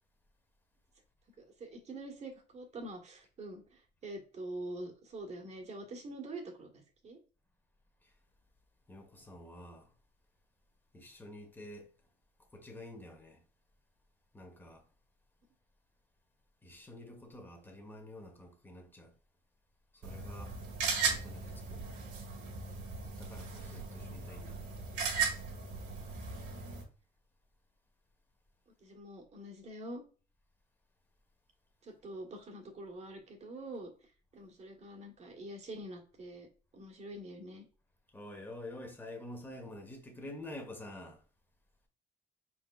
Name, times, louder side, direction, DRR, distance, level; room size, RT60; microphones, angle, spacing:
voice 1, 1.4-7.2 28.7-30.0 31.8-33.9 34.3-36.5 36.7-37.7, right 1 dB, 40° right, 1.6 m, -45 dB
voice 2, 8.9-9.9 10.9-11.9 12.5-13.4 14.3-14.8 16.6-19.1 19.9-20.5 21.1-21.8 23.2-24.6 38.1-41.2, left 1 dB, 10° left, 1.4 m, -48 dB
sound 1, 20.0-26.8, right 5 dB, 85° right, 1.8 m, -37 dB
4.7 x 4.4 x 2.4 m
cardioid pair, 110°, 17 cm